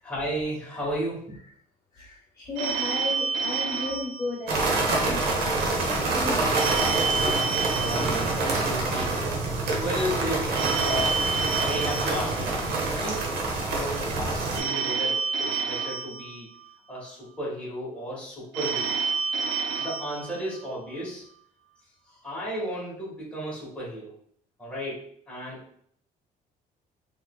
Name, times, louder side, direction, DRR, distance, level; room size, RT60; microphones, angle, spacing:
voice 1, 0.0-1.4 7.8-13.3 13.7-16.5 16.9-18.9 19.8-21.2 22.1-24.1 24.6-25.0 25.3-25.6, equal, 5° left, -7 dB, 1.4 m, -34 dB
voice 2, 1.9-7.4, left 2 dB, 25° left, -6 dB, 1.0 m, -35 dB
Telephone, 2.5-5.0 6.5-9.0 10.5-13.0 14.5-17.0 18.5-21.0, right 5 dB, 90° right, 0.5 m, -30 dB
sound 1, 4.5-14.6, right 3 dB, 70° right, 0.9 m, -26 dB
3.6 x 3.1 x 2.2 m, 0.65 s
cardioid pair, 110°, 17 cm